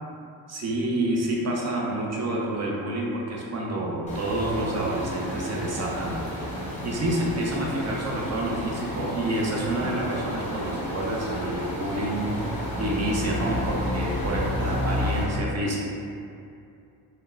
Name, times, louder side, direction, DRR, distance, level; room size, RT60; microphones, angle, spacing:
voice 1, 0.5-6.2 6.6-15.8, right 1 dB, 40° right, -2 dB, 0.5 m, -28 dB
sound 1, 4.1-15.2, left 1 dB, 15° left, 0.7 m, -31 dB
2.9 x 2.2 x 2.3 m, 2.6 s
cardioid pair, 75°, 44 cm